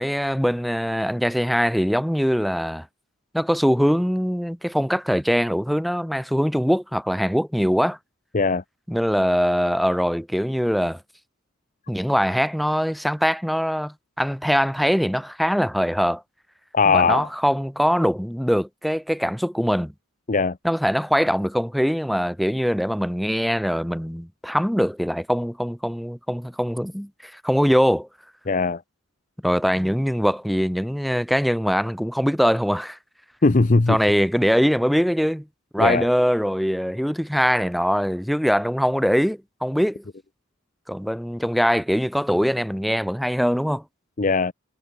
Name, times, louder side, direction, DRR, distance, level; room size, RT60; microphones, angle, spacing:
voice 1, 0.0-2.9 3.3-8.0 8.9-11.0 11.9-16.2 16.9-19.9 20.6-28.1 29.4-33.0 33.9-35.4 35.7-40.0 40.9-43.8, equal, ahead, 2.2 m, -22 dB
voice 2, 16.7-17.3 20.3-20.6 28.5-28.8 33.4-34.0 35.8-36.1 44.2-44.5, left 4 dB, 40° left, 0.7 m, -19 dB
head